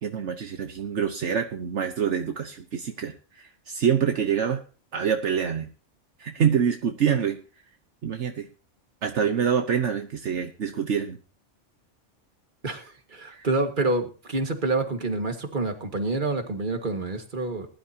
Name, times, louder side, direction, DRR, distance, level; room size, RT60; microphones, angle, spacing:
voice 1, 0.0-4.6 4.9-5.7 6.2-7.4 8.0-8.5 9.0-11.2 13.3-13.5, right 7 dB, 70° right, 5 dB, 1.3 m, -26 dB
voice 2, 12.6-17.7, right 2 dB, 40° right, 5 dB, 2.0 m, -27 dB
20.0 x 12.0 x 2.8 m, 0.37 s
omnidirectional pair, 1.3 m